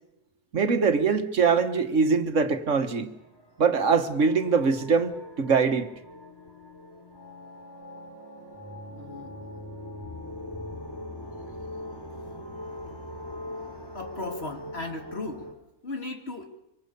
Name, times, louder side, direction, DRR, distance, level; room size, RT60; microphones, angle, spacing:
voice 1, 0.5-3.1 3.6-5.9, right 5 dB, 80° right, 1.9 m, -23 dB
sound 1, 3.0-15.5, left 1 dB, 20° left, 3.7 m, -41 dB
voice 2, 8.9-9.3 13.9-15.5 15.8-16.5, left 2 dB, 55° left, 2.9 m, -36 dB
25.5 x 24.5 x 6.9 m
omnidirectional pair, 1.3 m